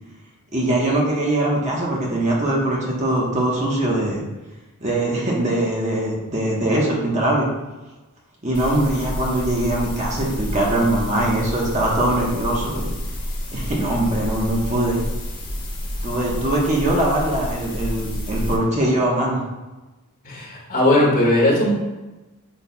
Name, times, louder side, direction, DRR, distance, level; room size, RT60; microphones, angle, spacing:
voice 1, 0.5-4.2 4.8-7.5 8.4-12.9 13.5-15.0 16.0-19.4, right 1 dB, 30° right, -3 dB, 1.2 m, -22 dB
sound 1, 8.5-18.5, left 1 dB, 20° left, 1.3 m, -29 dB
voice 2, 20.2-21.9, left 1 dB, 40° left, -5 dB, 1.9 m, -18 dB
8.4 x 5.6 x 2.3 m, 1.1 s
head